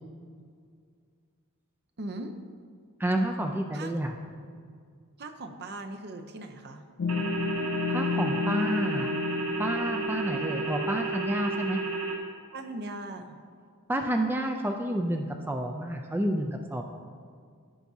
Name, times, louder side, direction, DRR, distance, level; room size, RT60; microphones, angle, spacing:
voice 1, 2.0-2.3 3.7-3.9 5.2-6.9 12.5-13.4, right 2 dB, 50° right, 6 dB, 0.6 m, -39 dB
voice 2, 3.0-4.1 7.9-9.1 9.6-11.8 13.9-16.8, right 1 dB, 10° right, 3 dB, 0.4 m, -29 dB
sound 1, 7.0-12.0, left 6 dB, 55° left, 0.4 m, -33 dB
sound 2, 7.1-12.2, right 3 dB, 75° right, 1.1 m, -32 dB
14.5 x 5.9 x 2.7 m, 2.1 s
head